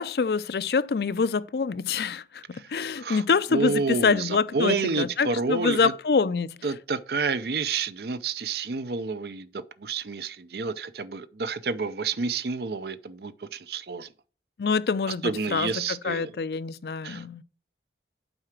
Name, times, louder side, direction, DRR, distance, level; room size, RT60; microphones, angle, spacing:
voice 1, 0.0-6.5 14.6-17.4, left 5 dB, 60° left, 0.4 m, -26 dB
voice 2, 3.5-5.9 6.6-14.1 15.2-16.3 17.0-17.2, right 4 dB, 60° right, 0.6 m, -29 dB
7.8 x 4.8 x 5.8 m
head